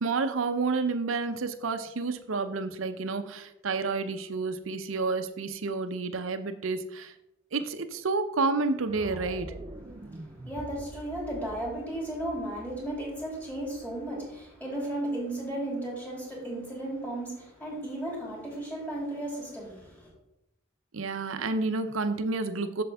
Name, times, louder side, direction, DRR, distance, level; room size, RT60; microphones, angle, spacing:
voice 1, 0.0-7.1 7.5-9.5 20.9-22.8, right 3 dB, 80° right, 9 dB, 0.7 m, -30 dB
sound 1, 8.9-14.9, right 2 dB, 25° right, 0.5 m, -46 dB
voice 2, 10.1-20.1, right 1 dB, 10° left, -4 dB, 2.9 m, -35 dB
7.8 x 6.9 x 3.5 m, 0.88 s
head